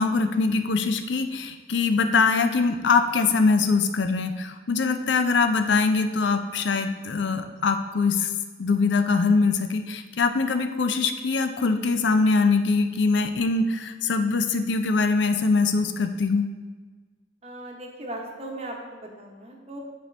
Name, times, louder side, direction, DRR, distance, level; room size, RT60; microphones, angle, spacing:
voice 1, 0.0-8.3 8.6-16.5, left 4 dB, 75° left, 8 dB, 0.5 m, -23 dB
voice 2, 17.4-19.8, right 1 dB, 35° right, 1 dB, 0.9 m, -38 dB
9.2 x 4.4 x 3.2 m, 1.4 s
head